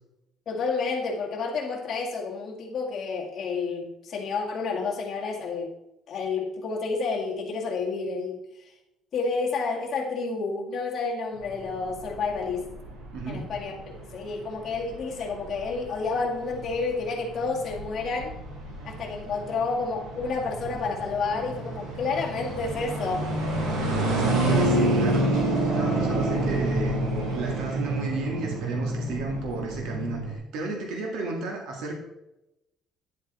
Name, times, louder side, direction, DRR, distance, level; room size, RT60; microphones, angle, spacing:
voice 1, 0.5-5.7 6.1-8.4 9.1-12.7 13.3-18.3 18.8-23.3, left 4 dB, 35° left, -3 dB, 2.0 m, -30 dB
sound 1, 11.4-30.3, right 1 dB, 90° right, 3.4 m, -29 dB
voice 2, 13.1-13.5 24.1-25.3 25.7-26.9 27.3-32.0, right 3 dB, 70° right, 0 dB, 1.9 m, -33 dB
9.6 x 7.8 x 4.1 m, 0.91 s
cardioid pair, 160°, 0 cm